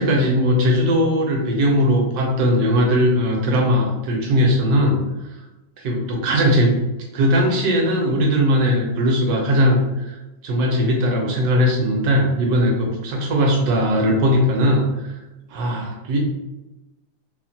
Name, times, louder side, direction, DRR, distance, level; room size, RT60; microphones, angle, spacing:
voice 1, 0.0-5.0 5.8-6.8 7.1-10.2 10.4-15.1 15.5-16.2, equal, 70° right, 0 dB, 1.1 m, -19 dB
3.0 x 2.1 x 2.6 m, 1.0 s
omnidirectional pair, 1.9 m